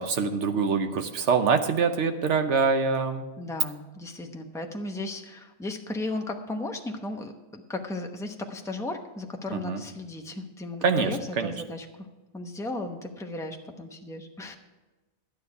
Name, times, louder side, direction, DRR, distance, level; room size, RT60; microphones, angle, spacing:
voice 1, 0.0-3.3 9.5-9.8 10.8-11.1 11.4-11.5, right 5 dB, 80° right, 8 dB, 1.2 m, -24 dB
voice 2, 3.4-11.9 12.3-14.6, left 2 dB, 5° left, 3 dB, 0.8 m, -35 dB
12.0 x 9.5 x 4.8 m, 1.1 s
omnidirectional pair, 1.2 m